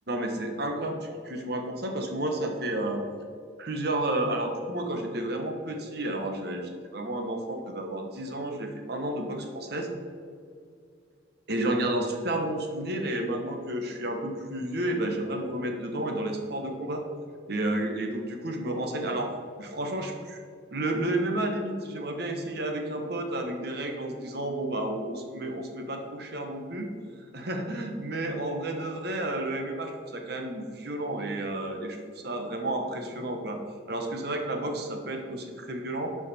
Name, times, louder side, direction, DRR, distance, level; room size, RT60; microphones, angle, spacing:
voice 1, 0.1-3.0 3.6-9.9 11.5-17.0 17.5-19.3 19.6-20.4 20.7-26.9 27.3-33.6 33.9-36.1, right 1 dB, 55° right, 3 dB, 1.1 m, -31 dB
11.5 x 5.0 x 4.3 m, 2.3 s
head